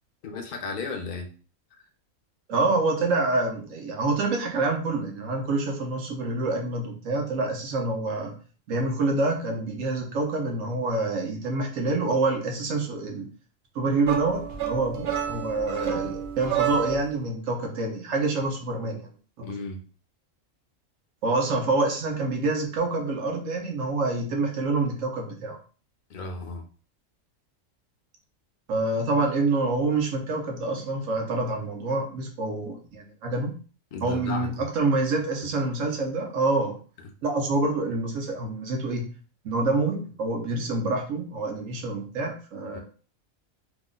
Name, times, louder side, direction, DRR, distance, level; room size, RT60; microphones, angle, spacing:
voice 1, 0.2-1.3 19.4-19.8 26.1-26.6 33.9-34.5 42.7-42.8, left 3 dB, 50° left, 3 dB, 0.7 m, -34 dB
voice 2, 2.5-8.3 8.7-13.3 13.7-19.1 19.4-19.5 21.2-25.6 28.7-33.5 34.0-36.8 37.2-39.0 39.4-42.8, right 3 dB, 80° right, 2 dB, 1.2 m, -27 dB
sound 1, 14.0-17.2, right 9 dB, 60° right, 0.8 m, -30 dB
3.0 x 2.1 x 3.7 m, 0.38 s
omnidirectional pair, 1.3 m